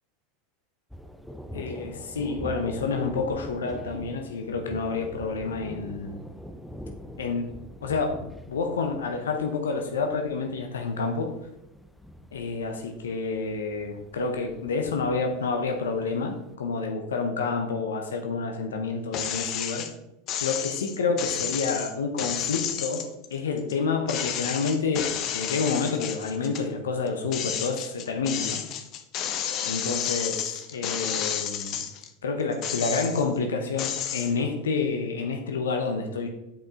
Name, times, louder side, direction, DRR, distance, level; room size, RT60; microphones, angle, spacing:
Thunder, 0.9-16.4, equal, ahead, 0.6 m, -43 dB
voice 1, 1.5-6.2 7.2-7.5 7.8-8.2 8.5-11.3 12.3-19.8 20.4-23.0 23.3-28.6 29.6-31.8 32.2-36.3, left 4 dB, 80° left, 4 dB, 0.9 m, -29 dB
sound 1, 19.1-19.9 20.3-23.7 24.1-26.7 27.1-32.1 32.5-33.4 33.8-34.3, left 9 dB, 45° left, 0.9 m, -31 dB
9.2 x 5.1 x 3.6 m, 0.90 s
hypercardioid pair, 90°, 0 cm